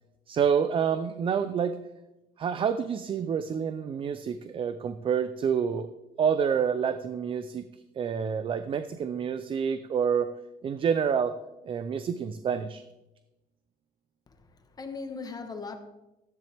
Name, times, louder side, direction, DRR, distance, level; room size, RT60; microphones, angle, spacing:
voice 1, 0.3-1.8 2.4-5.9 6.2-7.7 7.9-10.3 10.6-11.3 11.6-12.8, right 7 dB, 35° right, 0.5 m, -28 dB
voice 2, 14.3-15.8, left 4 dB, 25° left, 1.2 m, -39 dB
13.5 x 9.8 x 3.4 m
cardioid pair, 120°, 16 cm